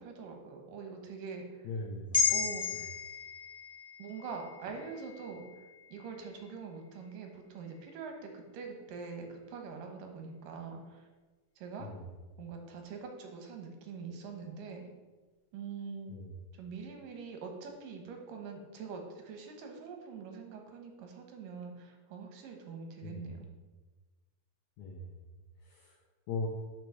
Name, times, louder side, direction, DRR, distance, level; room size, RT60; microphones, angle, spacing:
voice 1, 0.0-1.7 2.3-2.9 4.0-5.4 5.9-11.0 11.6-11.9 12.4-14.9 15.5-16.1 16.5-23.5, right 5 dB, 70° right, 3 dB, 2.5 m, -44 dB
voice 2, 1.6-2.2 11.8-12.0 16.1-16.3 23.0-23.3 24.8-25.1 25.7-25.9 26.3-26.5, left 3 dB, 85° left, 0 dB, 1.6 m, -39 dB
sound 1, 2.1-6.6 7.0-7.2, left 6 dB, 20° left, 0.8 m, -35 dB
6.2 x 5.7 x 6.2 m, 1.3 s
omnidirectional pair, 4.2 m